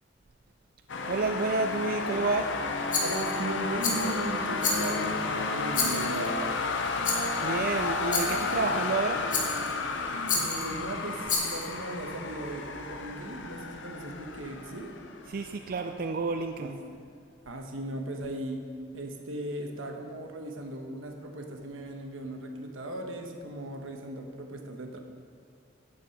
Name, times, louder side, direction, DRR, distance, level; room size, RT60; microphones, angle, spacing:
sound 1, 0.9-15.7, left 3 dB, 65° left, 0.7 m, -32 dB
voice 1, 1.1-2.6 7.4-9.3 15.2-16.8, right 3 dB, 45° right, 5 dB, 0.4 m, -30 dB
Rattle, 2.9-3.4 3.8-4.2 4.6-5.1 5.7-6.3 7.0-7.4 8.1-8.5 9.3-9.7 10.3-10.7 11.2-11.7, left 4 dB, 40° left, 1.5 m, -30 dB
voice 2, 3.0-6.6 10.3-14.9 16.6-17.0 17.4-18.6 18.9-25.0, right 1 dB, 85° right, 3 dB, 1.1 m, -37 dB
9.5 x 7.6 x 5.7 m, 2.3 s
head